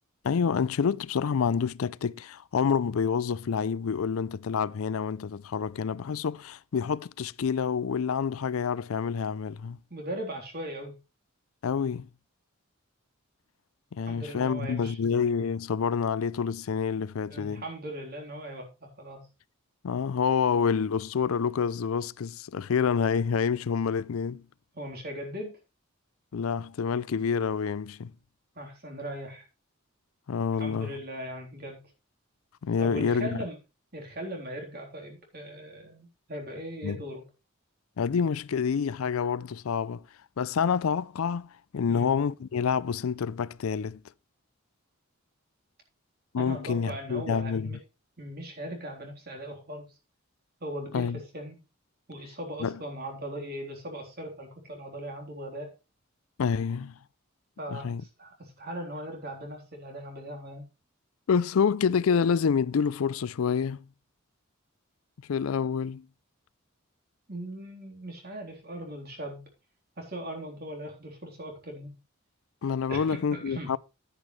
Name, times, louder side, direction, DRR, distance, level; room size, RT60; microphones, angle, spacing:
voice 1, 0.2-9.8 11.6-12.1 13.9-17.6 19.8-24.4 26.3-28.1 30.3-30.9 32.6-33.4 36.8-37.0 38.0-40.0 40.4-44.0 46.3-47.7 50.9-51.2 52.6-52.8 56.4-57.0 57.7-58.0 61.3-63.8 65.3-66.1 72.6-73.8, left 6 dB, 80° left, 0.4 m, -28 dB
voice 2, 9.9-11.0 14.1-15.0 17.3-19.3 24.7-25.6 28.6-29.5 30.5-31.8 32.8-33.6 33.9-37.3 41.9-42.1 46.4-47.8 48.2-50.0 50.6-51.6 52.1-55.7 57.6-60.7 67.3-69.4 70.0-72.0 72.9-73.8, right 1 dB, 50° right, 3.6 m, -39 dB
11.0 x 9.8 x 3.2 m
head